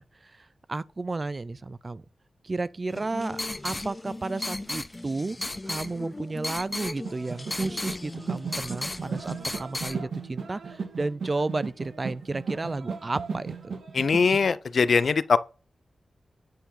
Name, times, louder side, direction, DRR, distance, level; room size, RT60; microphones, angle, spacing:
voice 1, 0.0-2.0 2.4-5.4 5.7-13.8, right 3 dB, 35° right, 0.3 m, -33 dB
sound 1, 2.9-10.0, left 2 dB, 20° left, 0.8 m, -35 dB
sound 2, 7.0-14.4, right 5 dB, 80° right, 2.1 m, -36 dB
voice 2, 13.9-15.4, left 5 dB, 65° left, 0.5 m, -21 dB
9.3 x 4.5 x 5.6 m
wide cardioid pair, 85°, 0 cm